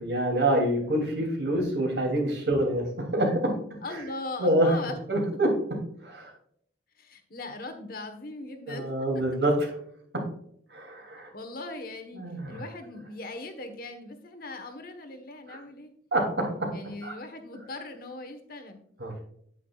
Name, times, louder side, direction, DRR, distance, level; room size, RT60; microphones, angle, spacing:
voice 1, 0.0-3.6 3.9-4.0 4.4-4.8 5.1-5.5 6.0-6.3 8.7-9.7 10.1-10.2 10.7-11.3 12.1-12.6 15.5-15.6 16.1-16.7 17.0-17.1 19.0-19.2, right 1 dB, 75° right, 1 dB, 3.0 m, -26 dB
voice 2, 3.8-5.0 7.0-8.8 9.1-9.2 11.3-12.2 12.5-15.9 16.7-18.8, left 2 dB, 55° left, 6 dB, 1.3 m, -39 dB
9.1 x 8.8 x 2.4 m, 0.67 s
head